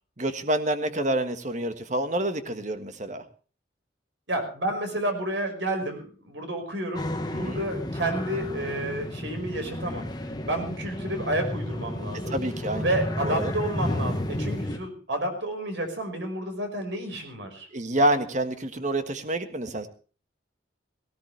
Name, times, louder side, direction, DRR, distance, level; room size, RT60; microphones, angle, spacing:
voice 1, 0.2-3.2 7.3-7.6 12.1-13.0 13.2-13.5 17.7-19.9, right 1 dB, 40° right, 9 dB, 1.6 m, -28 dB
voice 2, 4.3-12.4 12.8-17.7, right 1 dB, 70° right, 5 dB, 5.5 m, -30 dB
sound 1, 6.9-14.8, left 1 dB, 20° left, 1.4 m, -32 dB
18.5 x 17.0 x 3.4 m, 0.37 s
head